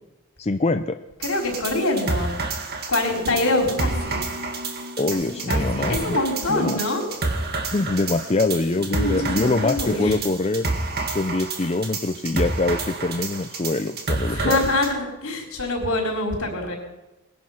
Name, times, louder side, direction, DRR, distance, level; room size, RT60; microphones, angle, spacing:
voice 1, 0.4-1.0 5.0-6.2 6.5-6.8 7.7-10.7 11.1-14.6, left 3 dB, 30° left, 8 dB, 0.5 m, -24 dB
voice 2, 1.2-2.3 2.9-4.2 5.1-7.0 8.9-10.2 14.2-16.8, left 2 dB, 70° left, 0 dB, 4.5 m, -25 dB
sound 1, 1.2-14.9, right 3 dB, 45° right, 2.0 m, -29 dB
sound 2, 3.1-7.8, left 2 dB, 75° right, 3.4 m, -39 dB
20.0 x 11.0 x 5.8 m, 1.0 s
head